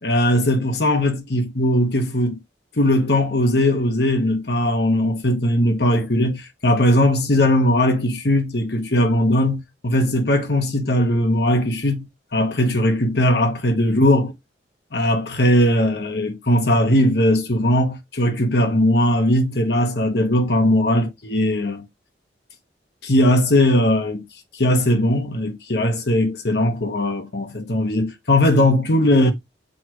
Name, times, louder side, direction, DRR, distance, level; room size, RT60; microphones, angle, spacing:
voice 1, 0.0-2.4 2.8-12.1 12.3-14.3 14.9-21.8 23.0-24.3 24.5-29.3, left 1 dB, 60° left, 1.3 m, -19 dB
7.0 x 4.7 x 3.1 m
head